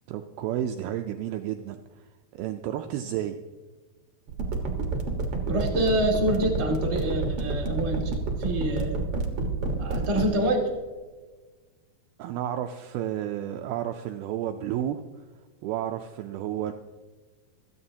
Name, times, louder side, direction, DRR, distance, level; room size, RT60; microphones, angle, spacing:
voice 1, 0.1-2.1 2.3-3.4 12.2-15.0 15.6-16.7, right 11 dB, 90° right, 6 dB, 2.1 m, -31 dB
sound 1, 4.3-10.3, right 4 dB, 60° right, 1.5 m, -28 dB
voice 2, 5.5-8.1 8.4-9.0 9.8-10.7, right 1 dB, 25° right, 0 dB, 1.6 m, -26 dB
26.5 x 9.6 x 2.8 m, 1.3 s
omnidirectional pair, 5.0 m